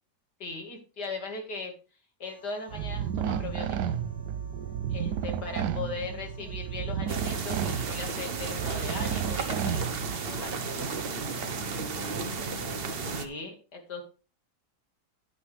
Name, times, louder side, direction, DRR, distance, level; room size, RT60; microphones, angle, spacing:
voice 1, 0.4-1.7 2.2-3.9 4.9-9.9 10.2-10.6 13.0-14.0, left 3 dB, 70° left, 3 dB, 2.5 m, -38 dB
sound 1, 2.2-13.4, right 1 dB, 25° left, 5.8 m, -55 dB
sound 2, 2.7-10.4, right 8 dB, 80° right, 1.2 m, -32 dB
voice 2, 5.3-6.6 11.4-12.5, right 4 dB, 60° right, 1 dB, 2.7 m, -49 dB
sound 3, 7.1-13.3, right 4 dB, 45° right, 0.8 m, -33 dB
9.8 x 9.2 x 3.2 m, 0.33 s
omnidirectional pair, 1.8 m